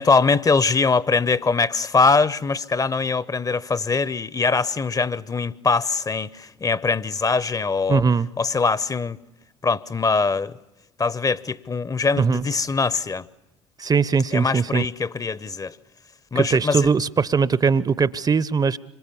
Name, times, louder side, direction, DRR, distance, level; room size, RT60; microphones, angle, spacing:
voice 1, 0.0-8.0 8.4-9.2 9.6-10.5 11.0-13.3 14.3-15.8 16.3-16.9, left 4 dB, 25° left, 0.8 m, -22 dB
voice 2, 7.9-8.3 12.2-12.5 13.8-14.9 16.3-18.8, right 5 dB, 25° right, 0.8 m, -20 dB
26.5 x 25.0 x 7.1 m
hypercardioid pair, 65°, 15 cm